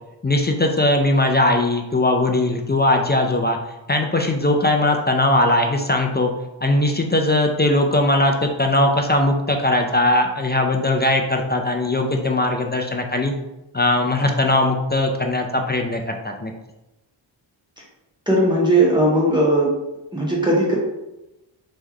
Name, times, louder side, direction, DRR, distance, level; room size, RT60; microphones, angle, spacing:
voice 1, 0.2-3.6 3.9-6.3 6.6-13.3 13.7-16.5, left 1 dB, 25° left, 3 dB, 0.4 m, -19 dB
voice 2, 18.3-19.7 20.1-20.8, right 1 dB, 10° right, -5 dB, 1.3 m, -17 dB
3.2 x 3.1 x 3.7 m, 0.95 s
wide cardioid pair, 80°, 47 cm